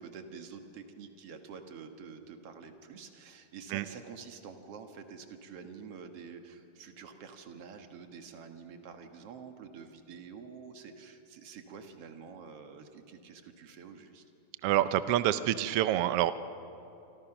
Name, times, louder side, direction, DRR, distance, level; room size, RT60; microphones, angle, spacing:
voice 1, 0.0-14.2, right 6 dB, 55° right, 6 dB, 2.3 m, -48 dB
voice 2, 14.6-16.3, right 12 dB, 85° right, 13 dB, 1.3 m, -27 dB
27.0 x 25.0 x 6.0 m, 2.9 s
omnidirectional pair, 3.5 m